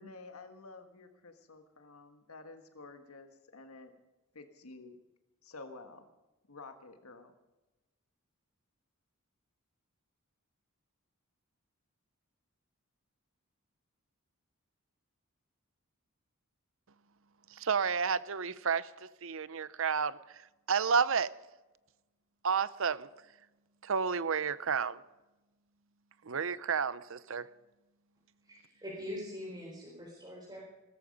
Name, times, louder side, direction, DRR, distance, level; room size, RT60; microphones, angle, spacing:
voice 1, 0.0-3.9 4.3-5.0 5.4-6.1 6.5-7.3, left 3 dB, 80° left, 1.6 m, -51 dB
voice 2, 17.5-21.4 22.4-23.1 23.8-25.0 26.2-27.5, right 6 dB, 65° right, 0.7 m, -31 dB
voice 3, 28.4-30.6, left 1 dB, 20° right, 4.4 m, -43 dB
19.0 x 14.0 x 5.4 m
head